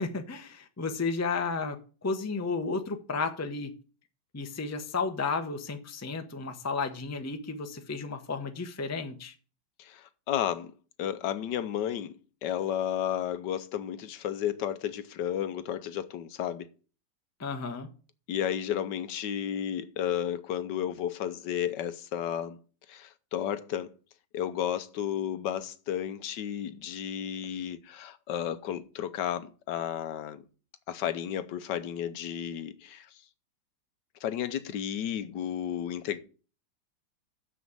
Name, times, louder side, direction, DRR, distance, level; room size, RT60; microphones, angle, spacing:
voice 1, 0.0-3.7 4.3-9.3 17.4-17.9, left 4 dB, 15° left, 0.5 m, -33 dB
voice 2, 9.8-10.7 11.0-12.2 12.4-16.7 18.3-22.6 22.9-23.9 24.3-30.4 30.9-33.1 34.2-36.2, left 10 dB, 75° left, 1.3 m, -32 dB
6.9 x 6.2 x 7.6 m
omnidirectional pair, 2.0 m